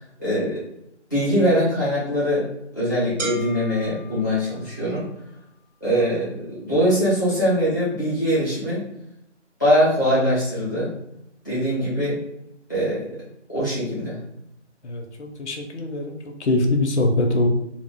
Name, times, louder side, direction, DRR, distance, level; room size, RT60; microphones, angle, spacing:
voice 1, 0.2-0.6 1.1-2.4 2.7-5.0 5.8-8.8 9.6-10.9 11.4-12.1 12.7-13.1 13.5-14.2, equal, 15° left, -11 dB, 0.7 m, -22 dB
sound 1, 3.2-5.1, equal, 85° right, 0.9 m, -34 dB
voice 2, 14.8-17.5, left 2 dB, 70° left, 2 dB, 0.7 m, -23 dB
2.3 x 2.1 x 3.4 m, 0.80 s
figure-of-eight pair, 170°, 36 cm